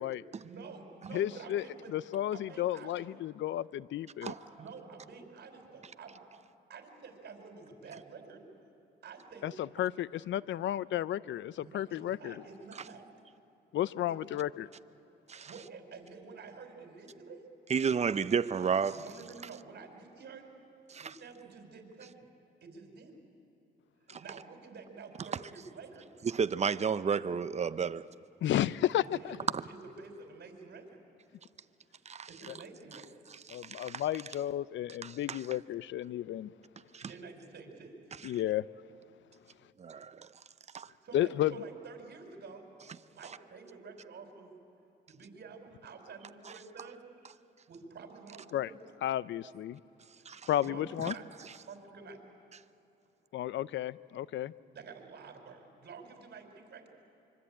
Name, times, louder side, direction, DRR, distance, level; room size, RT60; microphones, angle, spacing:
voice 1, 0.4-1.9 2.3-3.0 4.2-6.2 6.7-8.4 9.0-9.5 11.6-13.1 14.1-14.2 15.5-17.5 18.9-20.5 21.0-22.3 22.6-23.3 24.2-26.1 28.6-28.7 29.1-31.0 32.3-33.0 37.0-38.0 40.8-42.6 43.1-44.5 45.1-47.0 47.7-48.8 50.6-51.3 51.6-52.2 54.7-56.9, right 4 dB, 55° right, 4.9 m, -49 dB
voice 2, 1.1-4.3 9.4-12.4 13.7-14.7 28.4-29.4 32.5-32.6 33.5-36.5 38.2-38.7 41.1-41.5 48.5-48.7 49.0-49.8 50.5-51.1 53.3-54.5, left 12 dB, 70° left, 0.6 m, -32 dB
voice 3, 17.7-19.0 20.9-21.1 24.1-24.2 26.2-28.1 29.5-29.6 32.1-32.3 33.5-34.0 35.0-35.4 36.9-37.1 39.8-40.3 40.7-40.9 50.3-50.4, right 6 dB, 35° right, 0.8 m, -32 dB
25.0 x 24.0 x 8.8 m
cardioid pair, 90°, 20 cm